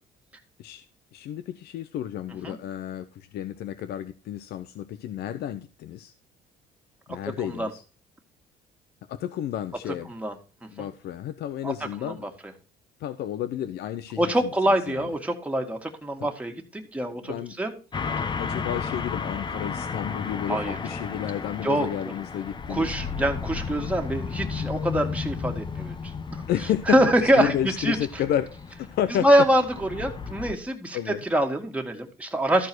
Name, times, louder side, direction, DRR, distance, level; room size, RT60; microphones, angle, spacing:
voice 1, 1.1-6.1 7.1-7.8 9.1-10.1 10.7-12.2 13.0-15.0 16.2-16.3 17.3-17.6 18.4-22.9 26.5-28.5 28.8-29.3 30.9-31.2, left 11 dB, 75° left, 11 dB, 0.8 m, -31 dB
voice 2, 14.2-17.7 20.5-20.8 21.6-21.9 22.7-26.4 26.9-28.0 29.2-32.7, right 1 dB, 10° right, 3 dB, 2.1 m, -25 dB
sound 1, 17.9-30.5, left 5 dB, 25° left, 1.0 m, -33 dB
13.5 x 4.8 x 6.1 m, 0.35 s
cardioid pair, 110°, 17 cm